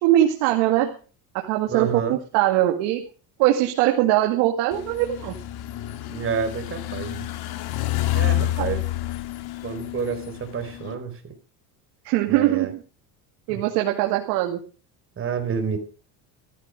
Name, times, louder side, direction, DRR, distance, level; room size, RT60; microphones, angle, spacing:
voice 1, 0.0-0.9 1.3-3.0 3.4-5.4 8.2-8.7 12.0-12.8 13.5-14.6, right 14 dB, 80° right, 3 dB, 2.3 m, -22 dB
voice 2, 1.7-2.2 6.1-7.3 8.1-8.8 9.6-11.3 12.3-12.7 13.5-13.6 15.2-15.8, right 6 dB, 30° right, 7 dB, 4.3 m, -29 dB
sound 1, 4.7-10.9, left 14 dB, 65° left, 2.0 m, -29 dB
15.5 x 14.0 x 5.3 m, 0.38 s
cardioid pair, 130°, 41 cm